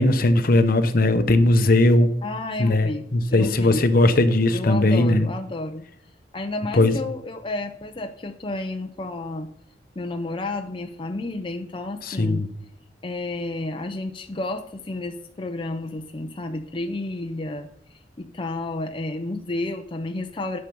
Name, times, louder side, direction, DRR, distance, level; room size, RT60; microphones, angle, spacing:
voice 1, 0.0-2.1 2.6-5.3 6.7-7.0 12.0-12.5, left 2 dB, 55° left, 10 dB, 0.9 m, -18 dB
voice 2, 2.2-3.9 4.5-5.8 6.3-9.5 10.0-12.4 13.0-20.6, left 2 dB, 30° left, 5 dB, 0.6 m, -31 dB
9.7 x 5.8 x 6.9 m, 0.70 s
head